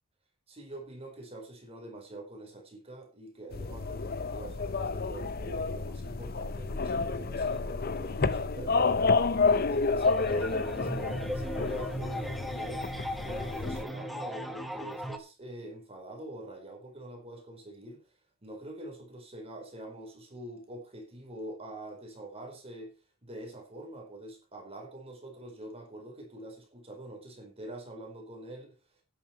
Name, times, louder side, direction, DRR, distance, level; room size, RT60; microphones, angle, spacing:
voice 1, 0.5-12.9 13.2-18.0 18.4-22.9 23.2-28.7, right 1 dB, 30° right, 4.6 m, -45 dB
sound 1, 3.5-13.8, left 4 dB, 45° left, 0.7 m, -30 dB
sound 2, 10.0-15.2, equal, ahead, 1.3 m, -37 dB
11.5 x 10.5 x 4.5 m
head